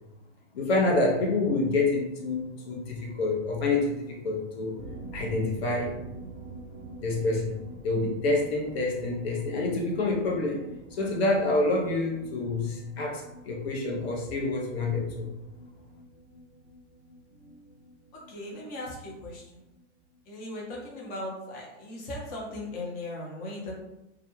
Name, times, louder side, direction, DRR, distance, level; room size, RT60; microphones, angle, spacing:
voice 1, 0.5-4.8 5.1-6.0 7.0-10.6 11.0-15.3, left 2 dB, 60° left, -1 dB, 0.7 m, -27 dB
sound 1, 4.8-20.2 20.4-20.5 20.8-20.9, right 2 dB, 25° right, 0.5 m, -46 dB
voice 2, 17.3-17.7 18.1-19.7 20.3-23.7, left 1 dB, 25° left, -3 dB, 0.7 m, -38 dB
2.3 x 2.1 x 3.0 m, 0.89 s
hypercardioid pair, 115°, 35 cm